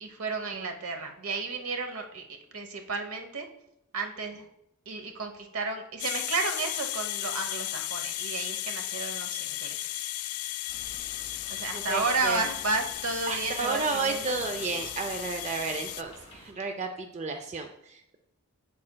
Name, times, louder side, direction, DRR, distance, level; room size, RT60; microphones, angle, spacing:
voice 1, 0.0-2.2 2.5-3.5 3.9-4.5 4.9-10.0 11.5-14.4, right 3 dB, 75° right, 5 dB, 0.9 m, -32 dB
sound 1, 6.0-16.0, left 15 dB, 75° left, 0.3 m, -35 dB
sound 2, 10.7-16.5, left 1 dB, 25° left, 1.9 m, -50 dB
voice 2, 11.7-12.5 13.3-18.2, right 4 dB, 30° right, 5 dB, 0.4 m, -32 dB
7.5 x 7.3 x 2.2 m, 0.80 s
head